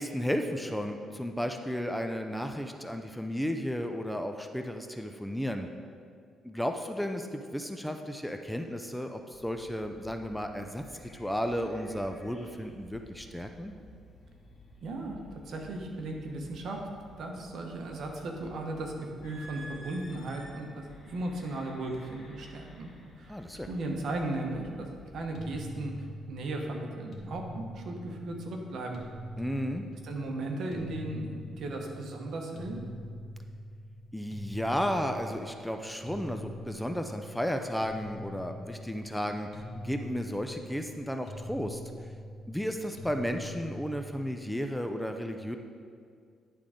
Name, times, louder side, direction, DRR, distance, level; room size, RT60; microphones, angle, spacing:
voice 1, 0.0-5.7 6.4-10.8 11.2-13.7 23.3-23.7 29.4-29.9 34.1-41.8 42.5-45.6, equal, 5° left, 5 dB, 0.5 m, -33 dB
sound 1, 9.3-25.6, left 1 dB, 30° left, 2.0 m, -54 dB
voice 2, 14.8-16.8 17.2-22.9 23.2-24.9 25.1-25.9 26.3-29.0 30.0-32.8, right 2 dB, 65° right, 2 dB, 1.1 m, -36 dB
sound 2, 19.2-23.7 24.4-24.6 25.2-25.6, equal, 90° left, 1.8 m, -51 dB
sound 3, 25.3-44.7, equal, 60° left, 1.2 m, -44 dB
10.5 x 3.7 x 5.1 m, 2.2 s
cardioid pair, 90°, 0 cm